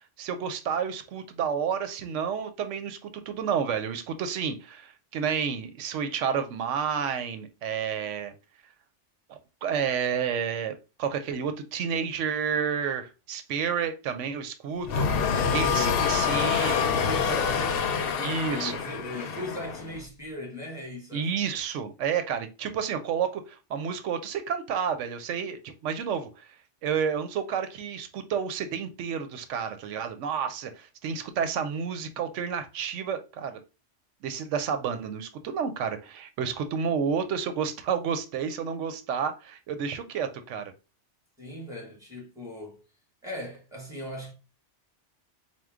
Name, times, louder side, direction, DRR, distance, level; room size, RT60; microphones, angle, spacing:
voice 1, 0.2-8.3 9.3-10.7 11.0-16.8 18.2-18.8 21.1-26.3 26.8-33.6 34.2-40.6, right 7 dB, 90° right, 1.0 m, -30 dB
sound 1, 14.8-20.0, left 7 dB, 60° left, 0.7 m, -26 dB
voice 2, 15.3-16.1 16.9-21.3 41.4-42.8 43.2-44.3, left 1 dB, 5° right, 1.5 m, -38 dB
4.4 x 2.2 x 3.5 m
omnidirectional pair, 1.2 m